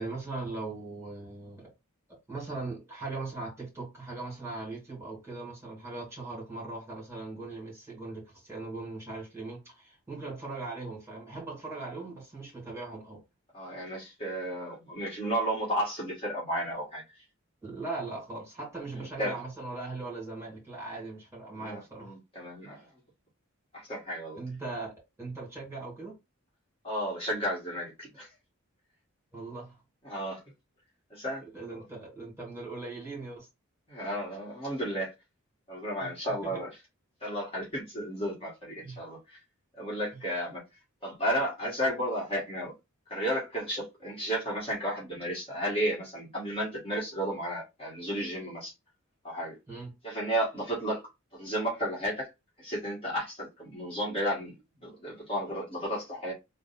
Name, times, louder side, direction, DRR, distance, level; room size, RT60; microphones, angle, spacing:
voice 1, 0.0-1.7 2.3-13.2 17.6-22.1 24.3-24.9 25.2-26.1 29.3-29.8 31.4-33.5 36.0-36.1 38.8-39.0 49.7-49.9, right 3 dB, 15° right, 2.3 m, -39 dB
voice 2, 13.5-17.0 19.0-19.4 21.6-22.9 23.7-24.4 26.8-28.3 30.0-30.4 31.1-31.4 33.9-35.1 35.7-36.7 37.2-39.4 39.8-40.6 41.0-42.7 43.1-48.7 49.2-49.5 50.0-51.0 51.3-52.3 52.6-56.3, equal, 30° left, 1.5 m, -33 dB
3.6 x 2.2 x 4.0 m
head